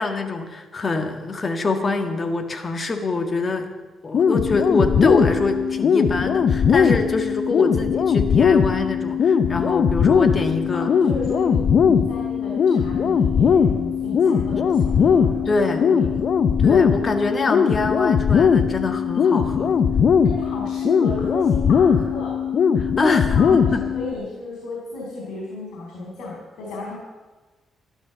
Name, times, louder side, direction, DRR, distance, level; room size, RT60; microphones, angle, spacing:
voice 1, 0.0-3.7 4.0-10.9 15.5-15.9 16.6-19.8 22.8-23.8, left 3 dB, 35° left, 6 dB, 1.9 m, -25 dB
sound 1, 4.1-24.1, left 6 dB, 60° left, 0.9 m, -19 dB
voice 2, 10.7-16.8 20.2-22.5 23.0-27.0, left 2 dB, 85° left, -3 dB, 4.0 m, -34 dB
13.0 x 12.0 x 7.0 m, 1.3 s
cardioid pair, 100°, 0 cm